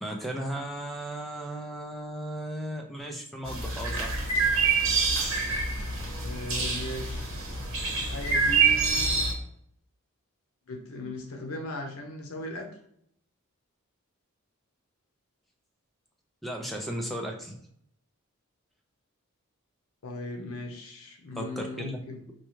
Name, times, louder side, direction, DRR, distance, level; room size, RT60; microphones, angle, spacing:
voice 1, 0.0-4.2 16.4-17.6 21.4-21.9, right 1 dB, ahead, 1 dB, 0.5 m, -35 dB
sound 1, 3.5-9.3, right 4 dB, 70° right, 1.2 m, -26 dB
voice 2, 6.2-7.3 7.8-9.2 10.7-12.7 20.0-22.3, left 2 dB, 80° left, 3 dB, 0.7 m, -38 dB
4.4 x 2.3 x 3.0 m, 0.69 s
head